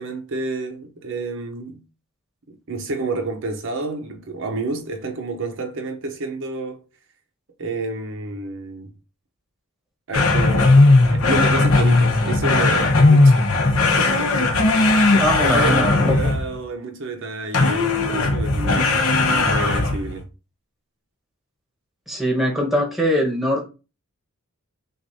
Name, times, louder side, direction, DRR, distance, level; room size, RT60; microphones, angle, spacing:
voice 1, 0.0-1.8 2.7-6.8 7.6-8.9 10.1-10.8 11.1-20.3, right 3 dB, 60° right, 0.7 m, -30 dB
sound 1, 10.1-16.6 17.5-20.1, left 2 dB, 65° left, 1.0 m, -17 dB
voice 2, 15.2-16.3 22.1-23.6, equal, ahead, 1.1 m, -22 dB
6.2 x 2.5 x 2.7 m
head